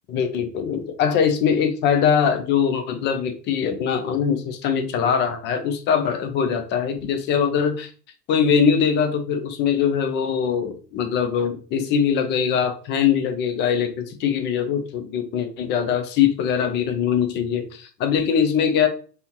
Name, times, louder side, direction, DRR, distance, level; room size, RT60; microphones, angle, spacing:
voice 1, 0.1-7.9 8.3-18.9, left 7 dB, 25° left, 8 dB, 0.6 m, -22 dB
5.5 x 2.9 x 2.9 m, 0.41 s
hypercardioid pair, 105°, 50 cm